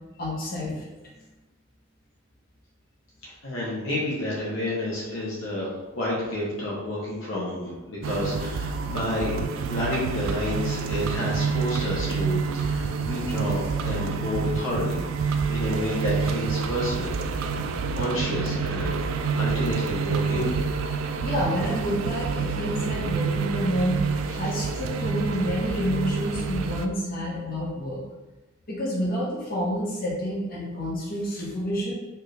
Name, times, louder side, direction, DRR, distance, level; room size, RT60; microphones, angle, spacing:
voice 1, 0.2-0.9 21.2-28.0 28.7-31.9, equal, 45° left, -6 dB, 1.2 m, -29 dB
voice 2, 3.2-15.0 15.5-17.1 17.6-20.6 24.3-24.4, left 1 dB, 70° left, -6 dB, 1.1 m, -30 dB
sound 1, 8.0-26.9, right 5 dB, 75° right, 0.3 m, -28 dB
4.5 x 2.6 x 3.3 m, 1.1 s
head